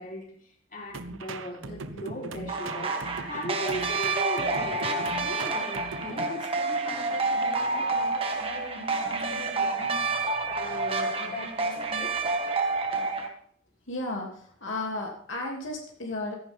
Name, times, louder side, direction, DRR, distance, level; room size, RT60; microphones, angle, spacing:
voice 1, 0.0-12.2, equal, 45° left, 0 dB, 3.9 m, -39 dB
sound 1, 0.9-6.4, right 3 dB, 85° right, 1.1 m, -40 dB
sound 2, 2.5-13.3, right 3 dB, 30° right, 1.7 m, -29 dB
voice 2, 13.9-16.4, left 2 dB, 80° left, 0 dB, 2.7 m, -34 dB
16.0 x 14.0 x 3.5 m, 0.62 s
head